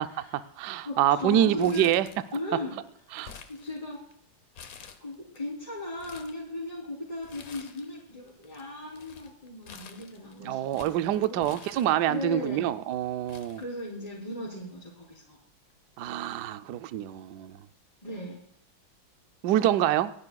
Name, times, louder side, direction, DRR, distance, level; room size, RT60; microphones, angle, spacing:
voice 1, 0.0-2.1 3.1-3.3 10.4-13.6 16.0-17.7 19.4-20.1, right 12 dB, 70° right, 1.0 m, -26 dB
voice 2, 0.9-1.9 2.3-2.8 3.5-4.0 5.0-11.5 12.1-12.7 13.6-15.4 18.0-18.4, left 2 dB, 15° left, 3.6 m, -37 dB
Crumpling crinkling, 1.6-2.6 2.9-4.1 4.5-5.4 5.8-6.4 7.2-8.0 8.3-12.3 12.9-13.0 13.3-14.3 14.6-14.7 15.7-15.9, left 6 dB, 55° left, 1.1 m, -49 dB
28.0 x 10.5 x 2.3 m
omnidirectional pair, 2.2 m